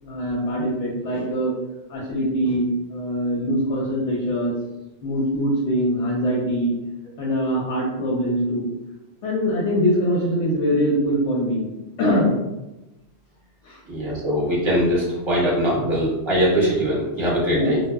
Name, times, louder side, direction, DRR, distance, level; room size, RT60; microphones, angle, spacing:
voice 1, 0.0-1.5 1.9-4.5 5.0-6.7 7.2-8.7 9.2-11.6 12.0-12.4 13.6-13.8 17.5-17.8, equal, 80° left, -4 dB, 0.9 m, -23 dB
voice 2, 13.9-17.8, equal, 25° right, -6 dB, 0.9 m, -21 dB
2.1 x 2.0 x 3.3 m, 0.98 s
omnidirectional pair, 1.2 m